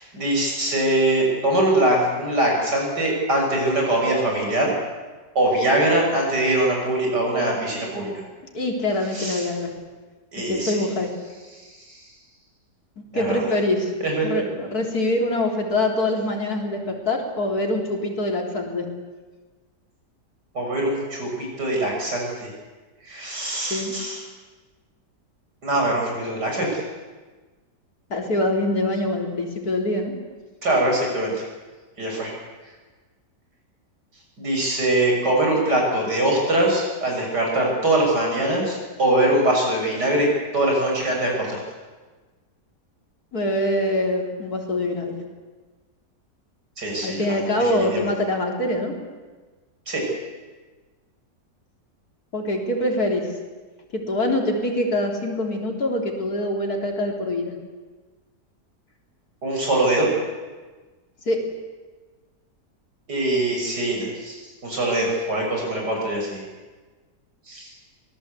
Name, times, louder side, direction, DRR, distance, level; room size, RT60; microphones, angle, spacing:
voice 1, 0.0-4.7 5.4-8.1 9.1-9.5 10.3-10.8 11.6-12.0 13.1-13.4 14.0-14.5 20.6-22.5 23.0-24.2 25.6-26.8 30.6-31.4 32.0-32.3 34.4-40.3 40.5-41.6 46.8-48.1 49.9-50.1 59.4-60.1 63.1-66.4 67.5-67.7, right 1 dB, 75° right, 0 dB, 7.1 m, -23 dB
voice 2, 8.5-9.7 10.5-11.1 13.1-13.9 14.2-18.9 23.7-23.9 28.1-30.1 43.3-45.2 47.0-48.9 52.3-53.3 53.9-57.5 61.3-61.4, left 1 dB, 60° left, 1 dB, 3.9 m, -24 dB
24.5 x 18.5 x 8.3 m, 1.3 s
omnidirectional pair, 1.8 m